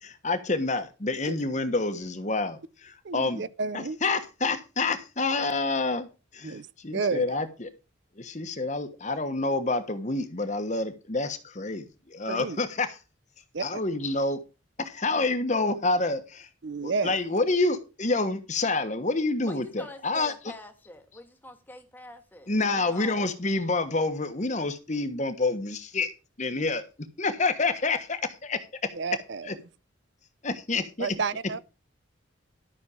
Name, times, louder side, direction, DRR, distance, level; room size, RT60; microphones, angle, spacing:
voice 1, 0.0-3.4 3.7-6.1 6.3-7.7 8.2-12.9 13.6-14.4 14.8-16.5 16.8-20.3 22.5-26.1 26.4-26.8 27.2-28.9 29.5-29.6 30.4-31.1, left 3 dB, 40° left, 1.2 m, -28 dB
voice 2, 3.0-4.0 6.4-6.7 6.9-7.2 12.3-12.6 13.5-13.6 16.6-17.2 28.9-29.6 31.0-31.6, right 4 dB, 65° right, 0.5 m, -31 dB
voice 3, 19.5-23.4, left 1 dB, 10° left, 1.6 m, -46 dB
12.5 x 6.3 x 5.2 m
head